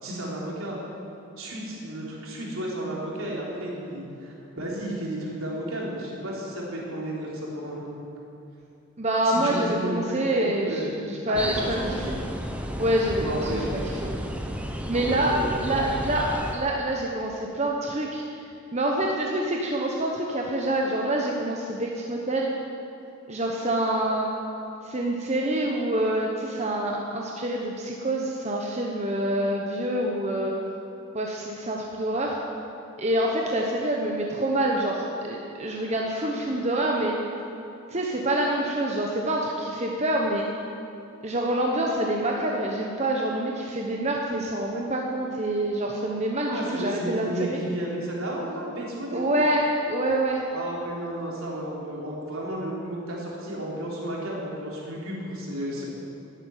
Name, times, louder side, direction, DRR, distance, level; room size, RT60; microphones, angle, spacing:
voice 1, 0.0-0.8 1.4-7.8 9.2-10.3 10.7-10.9 11.3-12.1 13.2-13.8 14.9-15.9 46.5-49.3 50.5-55.8, right 1 dB, 70° right, -3 dB, 3.6 m, -33 dB
voice 2, 9.0-12.2 12.8-14.1 14.9-18.2 18.7-22.5 23.3-24.3 24.8-30.5 31.1-32.4 33.0-37.1 37.9-40.4 41.2-47.6 49.1-50.4, right 1 dB, 30° right, -1 dB, 1.1 m, -26 dB
sound 1, 11.3-16.5, equal, 5° right, 0.8 m, -33 dB
12.0 x 10.5 x 9.2 m, 2.8 s
head